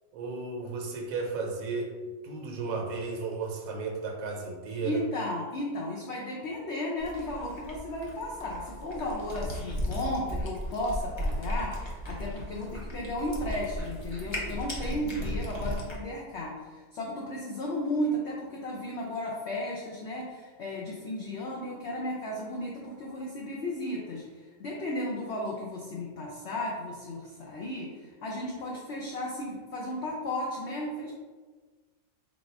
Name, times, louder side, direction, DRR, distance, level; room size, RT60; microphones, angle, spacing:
voice 1, 0.1-1.9 2.2-5.0, right 4 dB, 65° right, 1 dB, 1.1 m, -34 dB
voice 2, 4.8-31.1, left 1 dB, 60° left, -3 dB, 0.7 m, -34 dB
Cat, 7.0-16.0, equal, 40° left, 0.4 m, -36 dB
4.0 x 2.4 x 4.4 m, 1.4 s
omnidirectional pair, 1.7 m